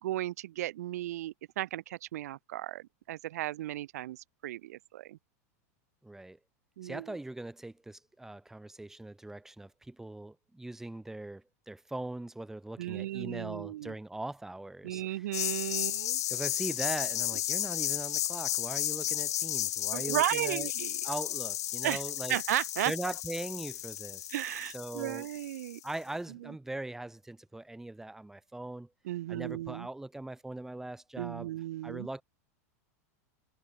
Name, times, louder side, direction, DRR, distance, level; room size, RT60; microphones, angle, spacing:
voice 1, 0.0-5.2 6.8-7.2 12.8-13.9 14.8-16.2 19.9-21.0 21.8-22.0 22.3-22.9 24.3-25.8 26.3-26.5 29.0-29.9 31.2-32.1, right 14 dB, 80° right, 0.5 m, -35 dB
voice 2, 6.0-6.4 6.8-15.2 16.3-20.7 21.0-22.4 22.9-24.3 24.7-25.3 25.8-28.9 29.3-31.5 31.8-32.2, right 2 dB, 5° right, 0.8 m, -40 dB
sound 1, 15.3-25.8, left 13 dB, 90° left, 0.4 m, -34 dB
supercardioid pair, 120°, 8 cm